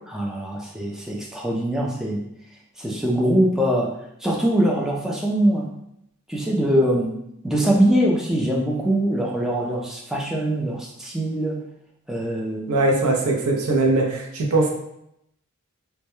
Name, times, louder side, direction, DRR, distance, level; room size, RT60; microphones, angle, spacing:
voice 1, 0.1-2.2 2.8-3.9 4.2-5.7 6.3-7.2 7.4-11.6 12.1-12.7, right 1 dB, ahead, -3 dB, 0.3 m, -22 dB
voice 2, 12.7-14.7, right 2 dB, 90° right, 1 dB, 0.5 m, -20 dB
2.2 x 2.0 x 2.9 m, 0.78 s
head